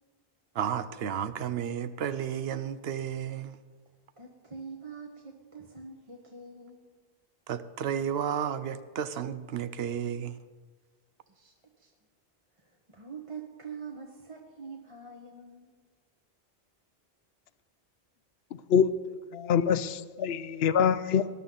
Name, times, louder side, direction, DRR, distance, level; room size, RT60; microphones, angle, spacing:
voice 1, 0.6-3.6 7.5-10.4, right 8 dB, 75° right, 0.9 m, -32 dB
voice 2, 4.2-6.8 11.3-11.9 12.5-15.7, right 5 dB, 30° right, 1.2 m, -45 dB
voice 3, 19.3-21.3, left 7 dB, 80° left, 0.8 m, -25 dB
19.5 x 11.5 x 3.9 m
omnidirectional pair, 1.0 m